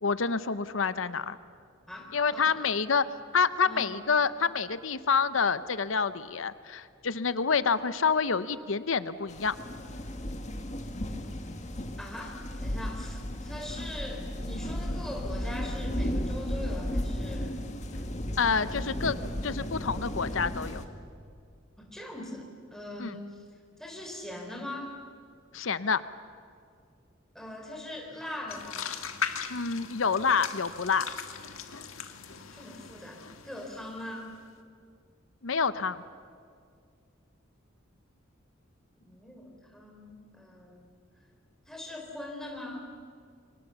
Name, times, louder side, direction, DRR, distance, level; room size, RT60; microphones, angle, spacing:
voice 1, 0.0-1.4 2.1-3.0 3.3-9.6 18.4-19.2 19.4-20.8 23.0-23.1 25.5-26.0 29.5-31.1 35.4-36.0, left 5 dB, 70° left, 14 dB, 0.8 m, -27 dB
voice 2, 1.9-2.6 3.1-3.2 3.6-4.0 12.0-17.6 18.7-18.9 21.8-23.4 23.8-25.0 27.3-29.0 32.5-34.3 39.0-40.9 41.7-42.8, left 1 dB, ahead, 1 dB, 4.0 m, -41 dB
sound 1, 9.3-20.8, equal, 35° left, 1.9 m, -34 dB
sound 2, 28.5-34.3, left 7 dB, 90° left, 1.7 m, -39 dB
28.5 x 24.5 x 7.1 m, 2.2 s
head